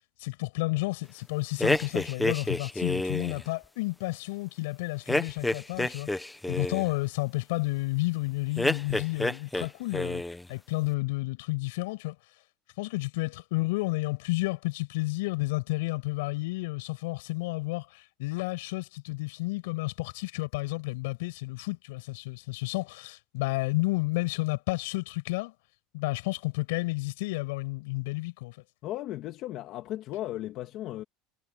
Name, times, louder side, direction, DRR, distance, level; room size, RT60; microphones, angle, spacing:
voice 1, 0.2-6.1 6.5-10.2 10.5-12.1 12.8-25.5 25.9-28.6, left 22 dB, 80° left, 6.6 m, -31 dB
sound 1, 1.6-3.4 5.1-6.9 8.6-9.7 9.9-10.5, left 1 dB, 5° left, 1.3 m, -29 dB
voice 2, 28.8-31.0, left 14 dB, 45° left, 2.1 m, -36 dB
supercardioid pair, 155°, 0 cm